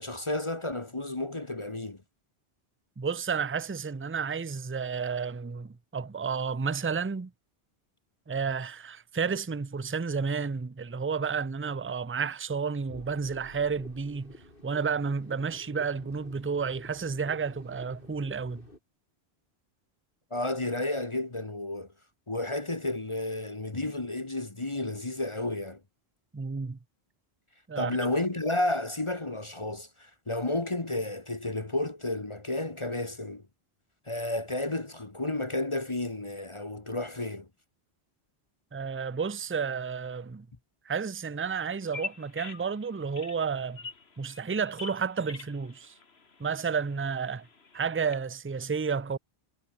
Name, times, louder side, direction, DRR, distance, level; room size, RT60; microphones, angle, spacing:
voice 1, 0.0-2.0 20.3-21.9 22.3-25.8 27.7-33.4 34.1-37.5, left 2 dB, 30° left, 1.4 m, -32 dB
voice 2, 3.0-7.3 8.3-14.3 14.6-18.7 26.3-26.8 27.7-28.0 38.7-40.5 40.9-43.8 44.2-45.9 46.4-47.5 47.7-49.2, right 5 dB, 20° right, 0.4 m, -31 dB
sound 1, 12.9-18.8, left 1 dB, 55° left, 8.2 m, -51 dB
Bird vocalization bird call bird song, 41.8-48.2, left 4 dB, 75° left, 2.2 m, -45 dB
omnidirectional pair, 1.1 m